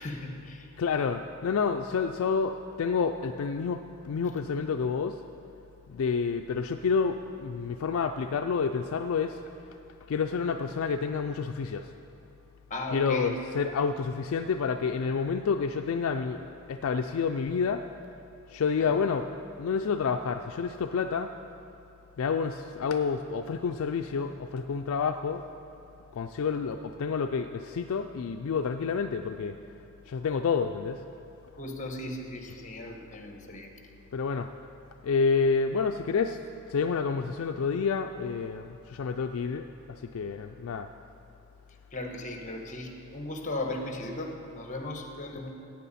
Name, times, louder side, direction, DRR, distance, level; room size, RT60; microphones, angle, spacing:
voice 1, 0.0-0.7 12.7-13.4 18.8-19.0 31.6-33.7 41.9-45.5, left 1 dB, 35° left, 3 dB, 1.2 m, -37 dB
voice 2, 0.8-5.2 5.9-9.4 10.1-11.9 12.9-17.8 18.5-19.3 19.6-21.3 22.2-25.4 26.1-29.6 30.1-31.0 34.1-34.5 35.0-36.4 36.7-39.7 40.1-40.9, left 5 dB, 65° left, 6 dB, 0.4 m, -29 dB
15.0 x 9.0 x 4.2 m, 2.8 s
head